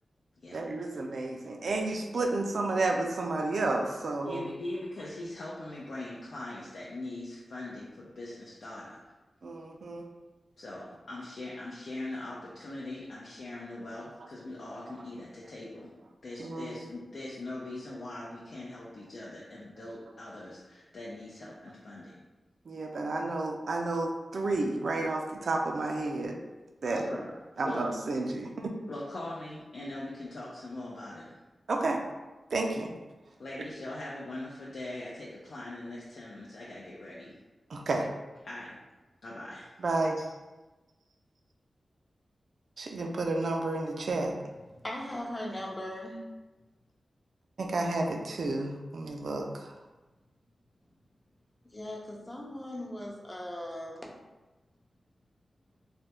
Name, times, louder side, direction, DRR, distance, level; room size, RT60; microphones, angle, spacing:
voice 1, 0.5-4.4 9.4-10.1 16.4-16.7 22.7-26.4 26.8-27.0 27.6-28.7 31.7-32.0 32.5-32.9 37.7-38.1 39.8-40.2 42.8-44.4 47.6-49.7, right 2 dB, 70° right, 3 dB, 0.4 m, -31 dB
voice 2, 4.2-9.0 10.6-15.9 16.2-22.2 26.9-27.3 27.6-27.9 28.9-31.4 33.4-37.4 38.4-38.8 39.2-39.8, left 2 dB, 75° left, -5 dB, 0.5 m, -41 dB
voice 3, 44.7-46.2 51.7-54.1, left 1 dB, 20° left, -1 dB, 0.5 m, -39 dB
3.2 x 2.2 x 2.8 m, 1.1 s
wide cardioid pair, 85°, 0 cm